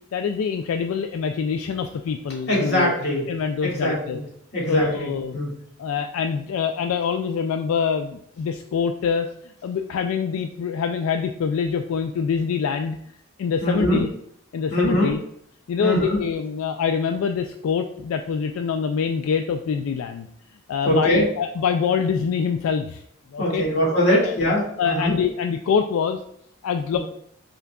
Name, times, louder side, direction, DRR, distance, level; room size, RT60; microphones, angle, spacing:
voice 1, 0.1-2.9 3.3-4.2 4.7-5.4 5.8-13.0 13.4-14.1 14.5-15.2 15.7-20.3 20.7-23.0 23.3-23.6 24.2-24.3 24.8-26.2 26.6-27.0, left 6 dB, 85° left, 6 dB, 0.3 m, -25 dB
voice 2, 2.5-3.3 3.6-4.2 4.5-5.6 13.6-14.0 14.7-15.1 15.8-16.2 20.8-21.3 23.4-25.2 26.9-27.0, equal, 55° left, -5 dB, 1.8 m, -22 dB
5.8 x 3.9 x 2.3 m, 0.69 s
head